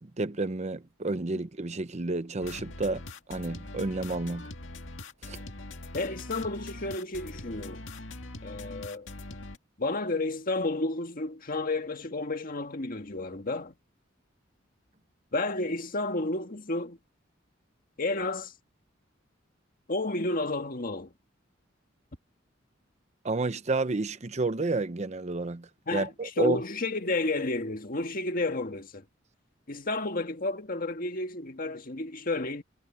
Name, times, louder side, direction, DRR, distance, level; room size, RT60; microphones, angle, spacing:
voice 1, 0.0-4.5 5.2-5.4 23.2-26.6, right 3 dB, 35° right, 0.8 m, -31 dB
sound 1, 2.4-9.6, left 2 dB, 75° left, 2.1 m, -42 dB
voice 2, 5.9-7.9 8.4-9.1 9.8-13.7 15.3-17.0 18.0-18.5 19.9-21.1 25.9-29.0 29.7-32.6, left 2 dB, 45° left, 1.8 m, -31 dB
head